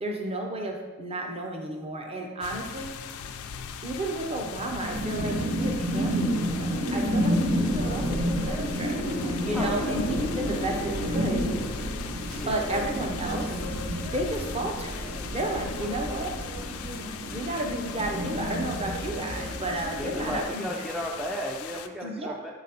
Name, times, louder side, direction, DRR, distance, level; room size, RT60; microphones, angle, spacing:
voice 1, 0.0-3.0 3.8-11.4 12.5-13.5 14.1-16.4 17.3-20.7 22.0-22.3, right 1 dB, 30° right, 2 dB, 0.7 m, -32 dB
sound 1, 2.4-21.9, left 7 dB, 85° left, 0.4 m, -40 dB
sound 2, 4.8-20.4, equal, 90° right, 1.4 m, -30 dB
sound 3, 5.2-21.5, equal, 70° right, 0.7 m, -44 dB
voice 2, 9.5-9.9 10.2-10.4 12.3-12.6 20.0-22.5, equal, ahead, -1 dB, 0.3 m, -34 dB
5.8 x 4.0 x 4.1 m, 1.3 s
head